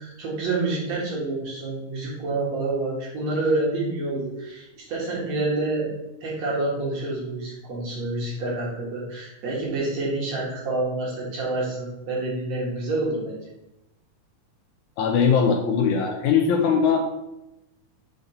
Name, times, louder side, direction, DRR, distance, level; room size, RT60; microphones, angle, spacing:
voice 1, 0.0-5.9 6.2-13.5, right 2 dB, 60° right, -5 dB, 2.9 m, -28 dB
voice 2, 15.0-17.1, left 6 dB, 75° left, 2 dB, 1.9 m, -20 dB
5.9 x 4.0 x 5.2 m, 0.91 s
omnidirectional pair, 3.7 m